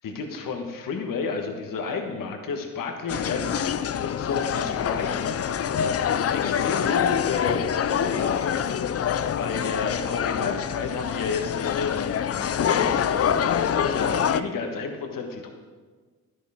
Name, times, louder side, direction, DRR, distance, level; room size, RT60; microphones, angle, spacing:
voice 1, 0.0-15.5, left 4 dB, 75° left, 3 dB, 1.4 m, -31 dB
sound 1, 3.1-14.4, left 8 dB, 45° left, 0.5 m, -26 dB
11.0 x 11.0 x 3.6 m, 1.5 s
cardioid pair, 65°, 34 cm